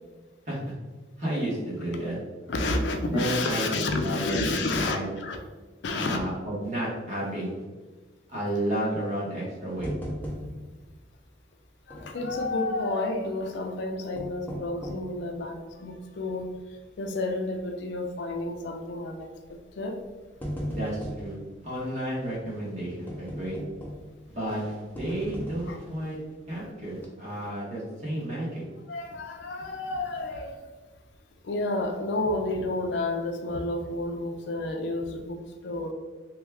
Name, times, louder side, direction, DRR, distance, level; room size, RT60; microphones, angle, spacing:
voice 1, 1.2-2.2 3.1-5.0 6.0-7.5 8.3-9.9 20.7-21.3 21.6-23.6 24.3-26.2 26.5-28.6, right 1 dB, 40° right, -6 dB, 1.3 m, -32 dB
voice 2, 2.5-5.4 5.8-6.2 10.4-10.5 11.9-16.5 17.0-19.3 19.8-20.0 25.7-25.8 28.9-30.6 31.4-35.9, left 2 dB, 70° left, 4 dB, 0.4 m, -30 dB
sound 1, 9.8-10.8 11.1-11.2 11.9-12.6 13.9-15.2 15.7-15.8 16.5-16.7 17.0-17.1 18.3-18.6 19.5-19.6 20.0-21.3 23.1-24.2 25.0-25.9 26.5-26.6 26.9-27.1, equal, 10° left, 0.5 m, -37 dB
3.0 x 2.2 x 3.4 m, 1.3 s
head